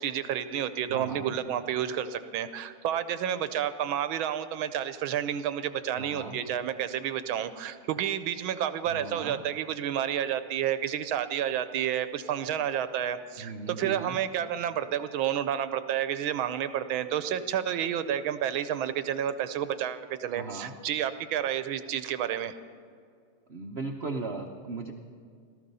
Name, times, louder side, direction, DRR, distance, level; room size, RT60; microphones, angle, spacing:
voice 1, 0.0-22.5, right 10 dB, 80° right, 11 dB, 1.5 m, -30 dB
voice 2, 0.9-1.4 6.0-6.4 8.9-9.4 13.4-14.2 20.3-20.7 23.5-24.9, right 3 dB, 60° right, 3 dB, 0.6 m, -37 dB
17.5 x 13.5 x 5.5 m, 2.2 s
omnidirectional pair, 2.3 m